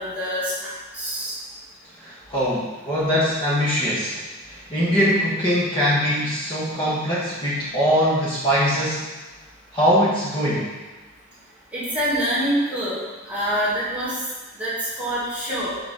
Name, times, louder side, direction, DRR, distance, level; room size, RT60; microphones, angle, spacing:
voice 1, 0.0-1.4 11.7-14.2 14.6-15.8, equal, 5° right, -8 dB, 2.0 m, -26 dB
voice 2, 2.0-4.2 4.5-9.1 9.7-10.7, equal, 25° left, -9 dB, 1.3 m, -22 dB
5.8 x 4.9 x 4.2 m, 1.3 s
head